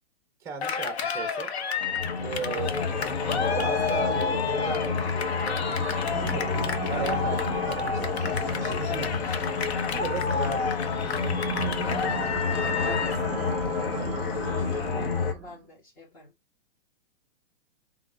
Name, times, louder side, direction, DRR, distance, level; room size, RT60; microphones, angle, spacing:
voice 1, 0.4-1.5 2.2-3.1 3.5-6.5 6.9-9.4 9.8-11.6, right 6 dB, 10° right, 0.8 m, -37 dB
Cheering, 0.6-13.3, left 6 dB, 85° left, 1.1 m, -31 dB
sound 1, 1.8-15.3, left 5 dB, 60° left, 1.3 m, -29 dB
sound 2, 5.8-15.6, right 6 dB, 25° right, 1.7 m, -37 dB
voice 2, 12.5-16.3, left 2 dB, 25° left, 2.4 m, -44 dB
3.8 x 3.6 x 3.6 m
hypercardioid pair, 165°, 31 cm